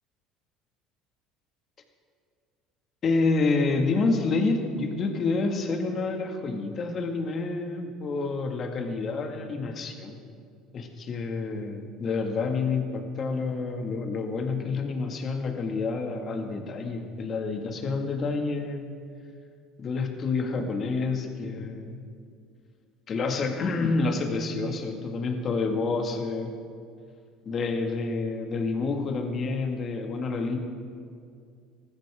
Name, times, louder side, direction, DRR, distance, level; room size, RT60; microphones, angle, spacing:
voice 1, 3.0-10.2 10.7-18.9 19.8-22.0 23.1-26.5 27.5-30.6, left 3 dB, 45° left, 4 dB, 2.1 m, -28 dB
20.0 x 14.5 x 3.8 m, 2.3 s
hypercardioid pair, 80°, 0 cm